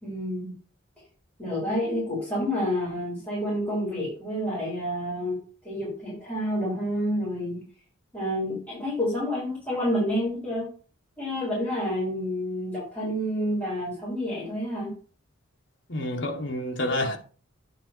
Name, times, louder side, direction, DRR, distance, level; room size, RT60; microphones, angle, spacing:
voice 1, 0.0-0.5 1.4-5.4 5.6-7.6 8.1-10.7 11.2-14.9, equal, 10° left, 4.4 m, -29 dB
voice 2, 15.9-17.2, left 1 dB, 55° left, 1.4 m, -28 dB
8.9 x 5.1 x 4.5 m
head